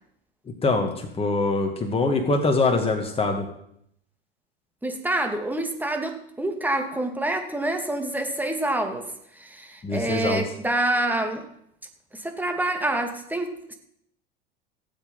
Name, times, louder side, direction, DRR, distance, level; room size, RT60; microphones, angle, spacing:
voice 1, 0.6-3.5 9.8-10.4, left 3 dB, 20° left, 3 dB, 2.2 m, -23 dB
voice 2, 4.8-9.1 9.4-11.5 12.1-13.8, right 1 dB, 5° right, 4 dB, 2.2 m, -27 dB
17.5 x 7.8 x 5.5 m, 0.72 s
hypercardioid pair, 90°, 30 cm